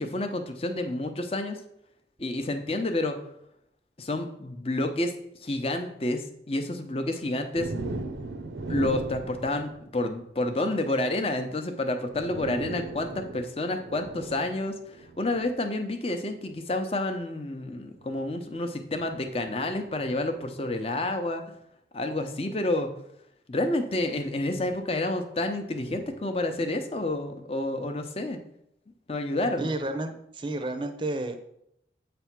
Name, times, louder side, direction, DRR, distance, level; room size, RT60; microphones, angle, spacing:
voice 1, 0.0-1.6 2.2-3.2 4.0-5.1 5.4-7.7 8.7-21.4 21.9-22.9 23.5-28.4 29.1-29.7, left 2 dB, 30° left, 6 dB, 0.7 m, -29 dB
sound 1, 7.5-10.3 11.6-11.7 12.0-15.6 16.4-16.7 17.9-20.8 22.3-22.5 24.2-24.9 25.7-27.1, right 2 dB, 85° right, 0.7 m, -39 dB
voice 2, 29.6-31.4, right 2 dB, 25° right, 7 dB, 0.6 m, -31 dB
8.0 x 3.4 x 6.0 m, 0.77 s
head